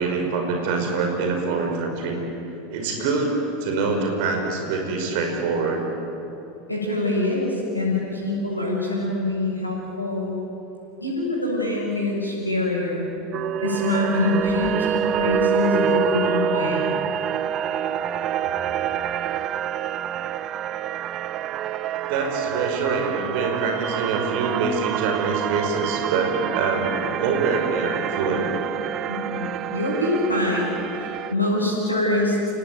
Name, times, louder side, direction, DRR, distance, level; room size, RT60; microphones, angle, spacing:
voice 1, 0.0-2.2 2.7-5.8 22.1-28.5, right 4 dB, 55° right, 3 dB, 5.3 m, -25 dB
voice 2, 6.7-10.4 11.0-13.1 13.6-16.9 29.1-32.4, left 2 dB, 90° left, -3 dB, 6.5 m, -24 dB
sound 1, 13.3-31.3, right 9 dB, 40° right, 0.7 m, -27 dB
28.5 x 18.0 x 9.4 m, 2.9 s
figure-of-eight pair, 80°, 0 cm